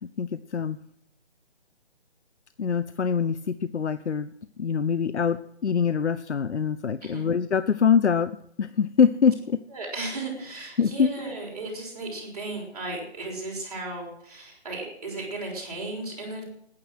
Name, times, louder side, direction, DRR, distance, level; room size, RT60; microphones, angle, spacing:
voice 1, 0.0-0.8 2.6-4.3 4.6-9.6 10.8-11.3, left 6 dB, 90° left, 13 dB, 0.8 m, -24 dB
voice 2, 9.7-16.4, right 2 dB, 35° right, -2 dB, 5.9 m, -35 dB
17.5 x 10.0 x 6.3 m, 0.73 s
hypercardioid pair, 180°, 33 cm